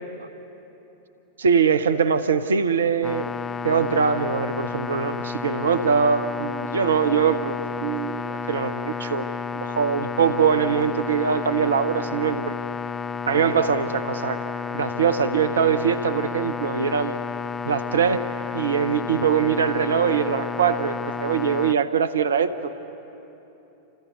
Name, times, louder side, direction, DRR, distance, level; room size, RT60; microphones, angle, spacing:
voice 1, 1.4-3.3 3.6-9.3 9.5-12.5 13.3-14.4 14.7-17.2 17.6-18.2 18.5-22.8, right 6 dB, 70° right, 12 dB, 0.9 m, -22 dB
sound 1, 3.0-21.7, left 6 dB, 15° left, 0.7 m, -31 dB
29.5 x 26.0 x 6.8 m, 3.0 s
figure-of-eight pair, 90°, 0 cm